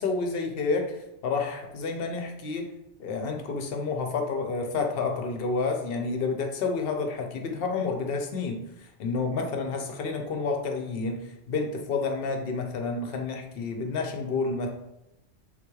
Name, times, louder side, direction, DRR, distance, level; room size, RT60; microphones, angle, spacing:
voice 1, 0.0-2.7 3.0-14.7, left 4 dB, 65° left, 3 dB, 0.7 m, -30 dB
3.7 x 3.0 x 2.3 m, 0.89 s
omnidirectional pair, 1.2 m